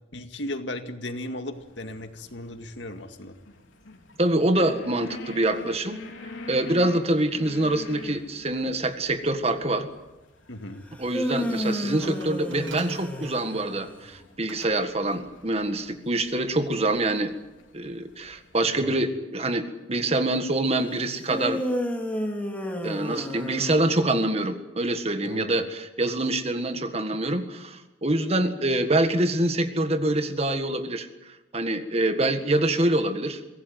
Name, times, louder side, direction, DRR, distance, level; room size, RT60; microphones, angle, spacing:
voice 1, 0.1-3.4 10.5-10.8 18.6-19.1 25.2-25.5, left 1 dB, 70° left, 7 dB, 2.1 m, -36 dB
sound 1, 1.5-18.7, left 2 dB, 90° left, 3.3 m, -46 dB
voice 2, 4.2-6.0 6.5-9.9 11.0-17.3 17.7-21.6 22.8-31.1 31.5-33.4, right 1 dB, 35° right, 9 dB, 1.7 m, -25 dB
sound 2, 10.9-14.1 21.3-24.2, equal, 10° left, 3.1 m, -31 dB
Glass, 12.0-13.8 14.5-14.8 15.1-15.3, right 5 dB, 85° right, 2.2 m, -45 dB
24.0 x 17.0 x 9.4 m, 1.1 s
head